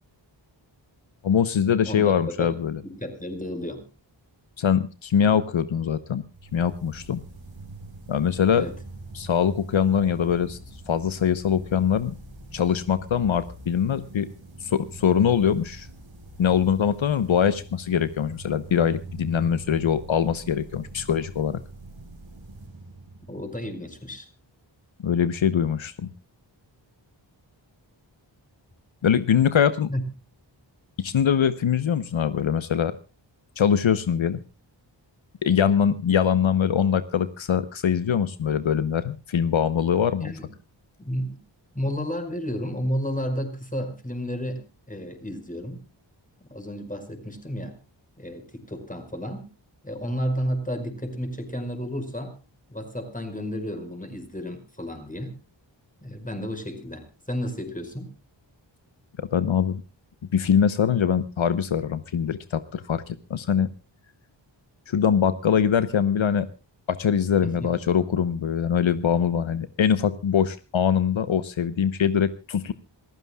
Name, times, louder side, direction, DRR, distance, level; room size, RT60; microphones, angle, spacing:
voice 1, 1.2-2.8 4.6-6.2 6.5-7.2 8.1-8.7 9.1-10.6 10.9-12.1 12.5-14.3 14.6-15.9 16.4-21.6 25.0-26.1 29.0-29.9 31.0-33.0 33.6-34.4 35.4-40.3 59.2-59.8 60.3-63.7 64.9-66.5 66.9-72.7, left 8 dB, 80° left, 13 dB, 1.0 m, -23 dB
voice 2, 1.9-3.8 8.6-8.7 23.3-24.3 29.9-30.0 40.2-40.5 41.0-41.4 41.7-44.6 44.9-45.8 46.4-47.7 48.2-49.5 49.8-52.3 52.7-55.3 56.0-58.1 67.4-67.7, equal, 15° left, 7 dB, 5.1 m, -32 dB
sound 1, 6.3-23.8, right 2 dB, 70° right, 4.9 m, -43 dB
27.0 x 15.0 x 2.3 m, 0.31 s
wide cardioid pair, 70°, 46 cm